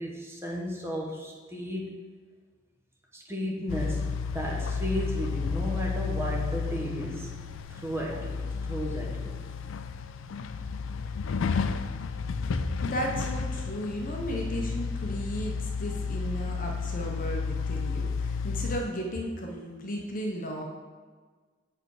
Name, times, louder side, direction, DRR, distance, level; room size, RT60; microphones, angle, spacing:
voice 1, 0.0-1.9 3.1-7.3 7.7-9.4, equal, 15° right, -2 dB, 1.1 m, -34 dB
sound 1, 3.7-18.8, left 5 dB, 80° left, 0.4 m, -32 dB
voice 2, 12.5-15.5 15.8-20.6, equal, 45° left, 1 dB, 1.0 m, -34 dB
7.7 x 4.8 x 4.8 m, 1.4 s
head